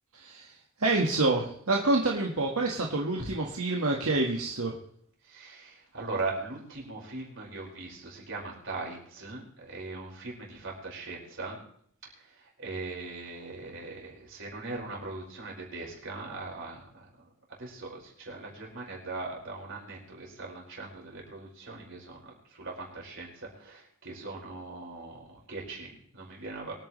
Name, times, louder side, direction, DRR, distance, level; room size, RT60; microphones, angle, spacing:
voice 1, 0.1-0.5 0.8-4.7, right 2 dB, 85° right, -1 dB, 1.7 m, -27 dB
voice 2, 5.2-11.6 12.1-17.3 17.6-26.7, right 3 dB, 60° right, -2 dB, 5.1 m, -40 dB
24.5 x 9.4 x 3.2 m, 0.64 s
head